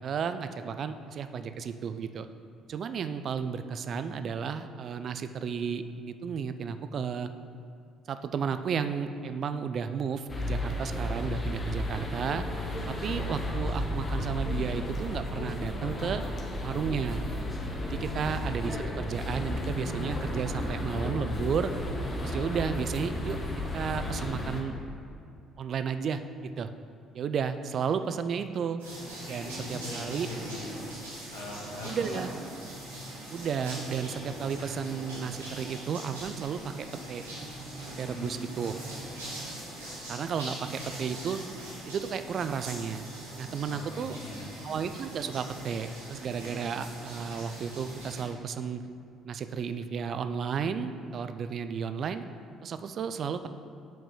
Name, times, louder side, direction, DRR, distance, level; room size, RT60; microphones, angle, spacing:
voice 1, 0.0-2.3 2.7-7.3 8.1-12.4 12.9-16.2 16.6-17.2 17.8-21.7 22.2-23.4 23.7-24.8 25.6-26.7 27.1-28.8 29.3-30.3 31.8-32.3 33.3-37.2 38.0-38.7 40.1-41.4 41.9-43.0 43.4-44.2 44.6-48.8 49.2-52.2 52.6-53.5, right 6 dB, 50° right, 10 dB, 0.4 m, -33 dB
sound 1, 10.3-24.6, left 1 dB, 30° left, 1.2 m, -33 dB
voice 2, 12.9-13.4 18.0-18.5 29.4-30.7 31.3-32.2 37.9-38.4 43.7-44.7, left 1 dB, 80° left, -5 dB, 1.5 m, -42 dB
sound 2, 28.8-48.2, right 1 dB, 90° right, 1.6 m, -42 dB
5.6 x 5.3 x 5.5 m, 2.4 s
hypercardioid pair, 50°, 0 cm